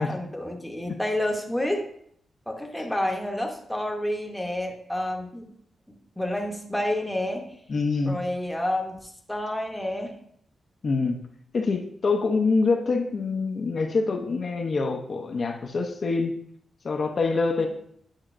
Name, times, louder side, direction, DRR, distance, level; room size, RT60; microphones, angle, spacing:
voice 1, 0.0-1.8 2.5-5.5 6.2-7.5 8.0-10.2 17.6-17.7, left 1 dB, 5° left, 1 dB, 0.7 m, -29 dB
voice 2, 7.7-8.2 10.8-11.2 11.5-16.3 16.8-17.7, left 4 dB, 45° left, 3 dB, 0.5 m, -25 dB
8.8 x 5.5 x 2.5 m, 0.68 s
wide cardioid pair, 165°, 0 cm